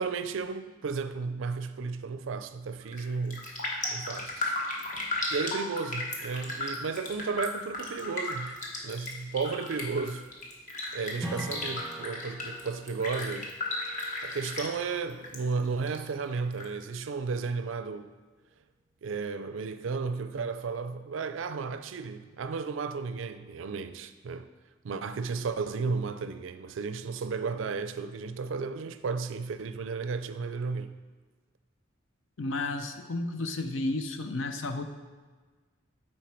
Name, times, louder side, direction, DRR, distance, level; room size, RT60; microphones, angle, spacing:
voice 1, 0.0-3.5 3.9-4.5 5.3-8.5 8.8-10.2 10.9-13.5 14.2-18.1 19.0-24.5 24.8-31.0, right 4 dB, 70° right, 0.4 m, -33 dB
Raindrop, 2.8-3.1 3.3-15.4 15.7-16.7 17.0-17.1, left 2 dB, 40° left, 1.2 m, -35 dB
Strum, 11.2-16.1, equal, ahead, 1.4 m, -45 dB
voice 2, 32.4-34.8, left 2 dB, 70° left, 0.6 m, -32 dB
9.2 x 4.4 x 4.4 m
head